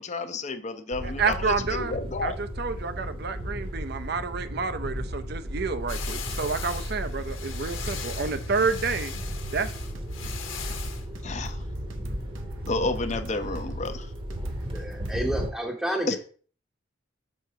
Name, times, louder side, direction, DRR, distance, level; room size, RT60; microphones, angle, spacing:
voice 1, 0.0-2.4 11.2-11.6 12.7-14.1 16.1-16.2, left 3 dB, 35° left, 0.6 m, -31 dB
sound 1, 0.9-15.5, equal, 25° right, 0.9 m, -34 dB
voice 2, 1.0-1.9 2.2-9.1 9.5-9.7, right 4 dB, 55° right, 0.6 m, -29 dB
sound 2, 5.9-11.0, left 7 dB, 85° left, 1.2 m, -39 dB
sound 3, 9.7-15.3, right 2 dB, 80° right, 0.8 m, -47 dB
voice 3, 14.7-16.2, right 1 dB, ahead, 0.8 m, -32 dB
6.4 x 3.8 x 5.6 m
head